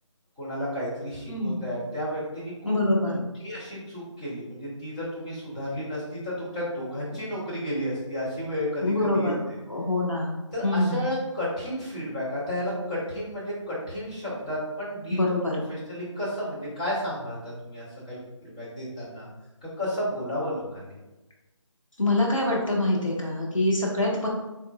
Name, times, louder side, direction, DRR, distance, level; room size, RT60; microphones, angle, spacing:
voice 1, 0.4-2.9 3.4-9.3 10.5-15.2 15.5-19.3 19.6-21.0, equal, 10° left, -10 dB, 0.9 m, -32 dB
voice 2, 1.3-1.6 2.6-3.2 8.8-9.4 9.7-10.3 10.6-11.0 15.1-15.6 22.0-24.3, left 1 dB, 80° left, -3 dB, 1.5 m, -25 dB
4.3 x 3.6 x 2.4 m, 1.1 s
figure-of-eight pair, 160°, 16 cm